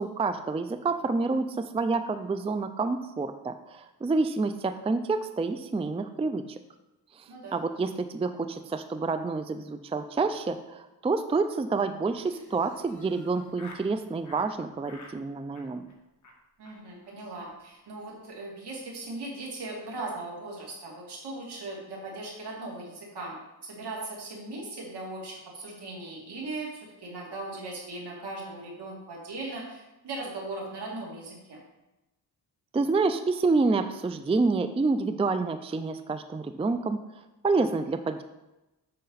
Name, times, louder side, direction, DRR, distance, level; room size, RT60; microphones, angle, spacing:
voice 1, 0.0-6.6 7.2-7.3 7.5-15.8 32.7-37.0 37.4-38.2, right 3 dB, 15° right, 9 dB, 0.4 m, -28 dB
voice 2, 7.3-7.6 16.6-23.4 23.6-31.6, right 2 dB, 70° right, -2 dB, 2.7 m, -38 dB
Laughter, 12.1-13.9 14.2-14.5 14.8-15.2 15.5-15.9 16.2-16.4 16.6-16.8 17.0-17.1 17.4-17.5 17.8-18.1, left 2 dB, 45° left, 1.6 m, -51 dB
8.5 x 6.4 x 4.0 m, 0.99 s
cardioid pair, 95°, 41 cm